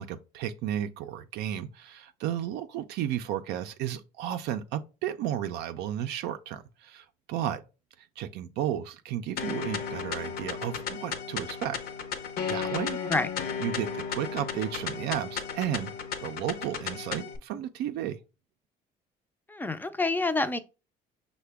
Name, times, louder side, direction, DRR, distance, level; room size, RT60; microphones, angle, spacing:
voice 1, 0.0-7.6 8.0-11.8 12.5-13.0 13.6-15.9 16.2-18.2, right 11 dB, 85° right, 0.4 m, -33 dB
sound 1, 9.4-17.4, left 7 dB, 65° left, 0.7 m, -34 dB
voice 2, 19.5-20.6, left 2 dB, 10° left, 0.4 m, -27 dB
5.7 x 2.1 x 3.3 m
cardioid pair, 110°, 17 cm